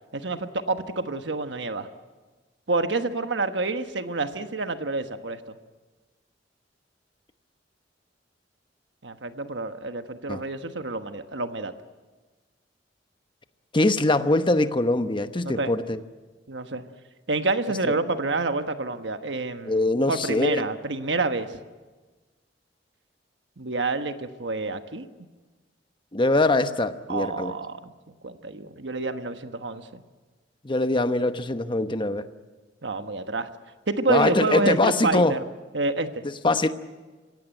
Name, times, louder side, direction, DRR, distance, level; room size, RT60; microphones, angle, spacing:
voice 1, 0.1-1.9 2.7-5.6 9.0-11.7 15.4-15.7 16.5-16.8 17.3-21.6 23.6-25.1 27.1-27.9 28.2-30.0 32.8-33.5 33.9-35.4 35.7-36.2, right 3 dB, 75° right, 8 dB, 1.3 m, -28 dB
voice 2, 13.7-16.0 17.8-18.0 19.7-20.7 26.1-27.5 30.6-32.3 34.1-35.4 36.4-36.7, left 2 dB, 25° left, 10 dB, 1.0 m, -23 dB
26.0 x 17.0 x 9.0 m, 1.3 s
head